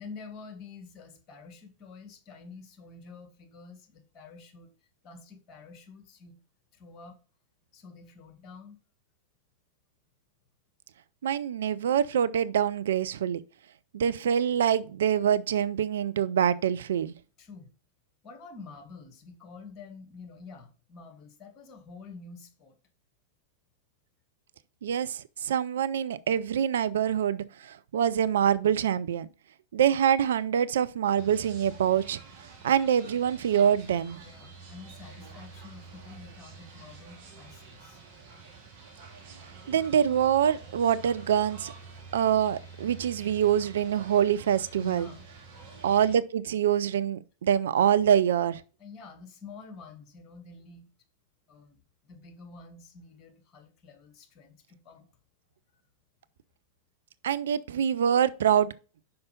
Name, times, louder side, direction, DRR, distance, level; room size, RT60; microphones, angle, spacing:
voice 1, 0.0-4.7 5.0-6.4 6.7-7.2 7.7-8.8 17.4-17.7 18.2-22.7 34.2-38.0 44.8-45.3 48.8-50.9 51.5-51.8 52.0-55.1 55.7-55.8, left 4 dB, 35° left, 2.0 m, -48 dB
voice 2, 11.2-13.4 13.9-17.1 24.8-29.3 29.7-32.2 32.6-34.2 39.7-41.7 42.1-45.1 45.8-48.6 57.2-58.7, right 9 dB, 60° right, 0.4 m, -25 dB
sound 1, 31.1-46.2, right 4 dB, 45° right, 2.6 m, -48 dB
5.7 x 5.3 x 5.2 m
figure-of-eight pair, 90°, 0 cm